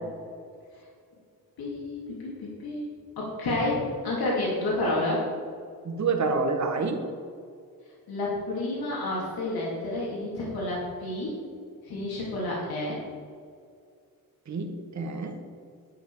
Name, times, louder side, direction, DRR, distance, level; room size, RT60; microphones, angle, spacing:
voice 1, 1.6-2.9 3.2-5.3 8.1-11.4 11.8-13.0, left 2 dB, 90° left, -5 dB, 2.6 m, -30 dB
voice 2, 5.8-7.0 14.5-15.4, right 4 dB, 50° right, 4 dB, 1.3 m, -28 dB
11.0 x 7.3 x 4.7 m, 2.3 s
wide cardioid pair, 125°, 36 cm